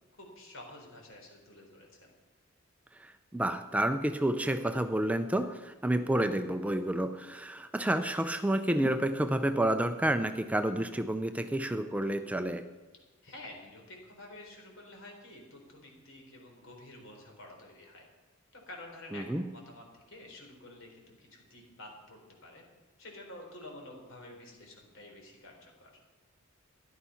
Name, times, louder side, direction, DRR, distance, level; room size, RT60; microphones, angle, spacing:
voice 1, 0.2-2.1 13.2-18.1 18.5-22.6 23.0-25.9, left 1 dB, 65° left, 1 dB, 4.1 m, -50 dB
voice 2, 3.0-12.6 19.1-19.4, right 1 dB, 5° right, 8 dB, 0.5 m, -30 dB
14.5 x 11.5 x 5.7 m, 1.3 s
head